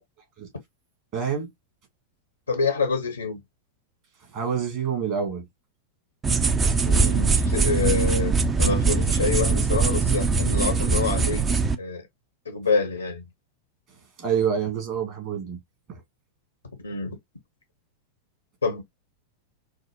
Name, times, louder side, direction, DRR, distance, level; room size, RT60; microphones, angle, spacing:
voice 1, 1.1-1.5 4.3-5.4 14.2-15.6 15.9-16.0, right 7 dB, 40° right, 1.9 m, -27 dB
voice 2, 2.5-3.4 6.8-12.1 12.5-13.2 16.8-17.2 18.6-18.8, left 4 dB, 80° left, 0.9 m, -27 dB
sound 1, 6.2-11.7, right 4 dB, 20° right, 0.5 m, -22 dB
4.8 x 2.1 x 2.8 m
figure-of-eight pair, 90°, 0 cm